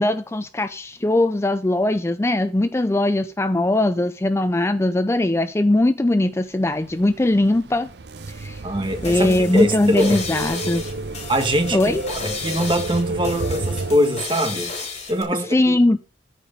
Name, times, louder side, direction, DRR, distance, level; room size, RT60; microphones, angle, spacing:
voice 1, 0.0-7.9 8.3-8.6 9.0-10.8 11.7-12.0 15.3-16.0, left 1 dB, 15° left, 0.4 m, -20 dB
sound 1, 6.7-14.0, right 3 dB, 60° right, 0.6 m, -31 dB
voice 2, 8.6-10.2 11.3-11.8 12.1-14.7 15.1-15.6, equal, 25° right, 1.9 m, -22 dB
sound 2, 8.8-15.2, left 4 dB, 35° left, 3.6 m, -33 dB
13.5 x 4.9 x 5.3 m
head